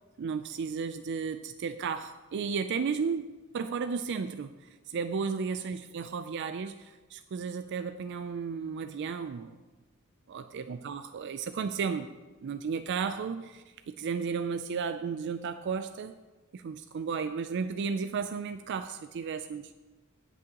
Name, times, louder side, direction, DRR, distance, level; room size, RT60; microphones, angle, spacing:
voice 1, 0.2-9.6 10.3-16.1 16.5-19.7, right 5 dB, 55° right, 9 dB, 0.4 m, -34 dB
17.5 x 6.1 x 2.9 m, 1.2 s
head